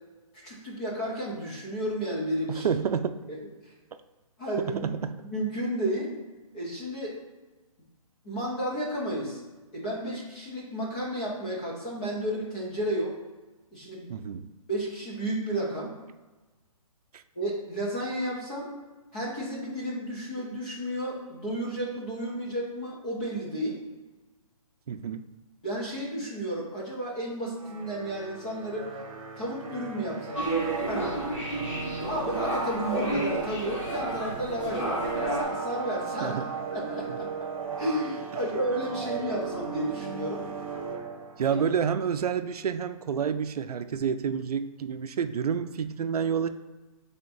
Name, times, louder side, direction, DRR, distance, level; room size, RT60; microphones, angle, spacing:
voice 1, 0.4-2.7 3.6-3.7 4.4-4.8 5.2-6.1 6.5-7.2 8.2-9.4 9.7-13.1 13.7-14.1 14.7-15.9 17.4-18.7 19.1-23.8 25.6-28.9 29.4-30.4 30.9-31.2 32.1-36.4 36.7-37.3 37.8-40.5 41.5-41.6, right 1 dB, 10° left, -4 dB, 0.5 m, -32 dB
voice 2, 2.5-3.2 4.6-5.1 14.1-14.5 17.1-17.2 24.9-25.2 36.2-36.5 41.4-46.5, right 7 dB, 85° right, 9 dB, 0.4 m, -29 dB
sound 1, 27.6-41.7, right 6 dB, 65° right, 0.9 m, -36 dB
sound 2, 30.3-35.4, right 1 dB, 50° left, 1.4 m, -31 dB
5.7 x 3.4 x 2.6 m, 1.2 s
hypercardioid pair, 175°, 19 cm